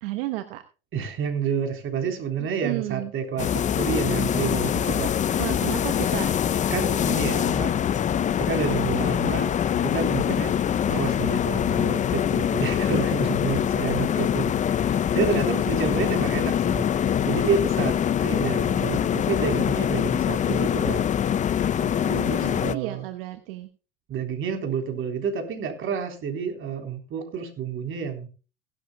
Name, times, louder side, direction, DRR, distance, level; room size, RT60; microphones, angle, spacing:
voice 1, 0.0-0.6 2.6-3.1 5.4-6.3 21.7-23.7, right 17 dB, 70° right, 8 dB, 1.1 m, -32 dB
voice 2, 0.9-5.1 6.7-7.8 8.4-10.6 10.9-16.9 17.2-18.0 18.2-21.0 22.2-23.1 24.1-28.3, right 6 dB, 45° right, 4 dB, 3.6 m, -29 dB
sound 1, 3.4-22.7, left 9 dB, 25° left, 0.5 m, -24 dB
17.5 x 12.0 x 2.2 m, 0.34 s
hypercardioid pair, 90°, 29 cm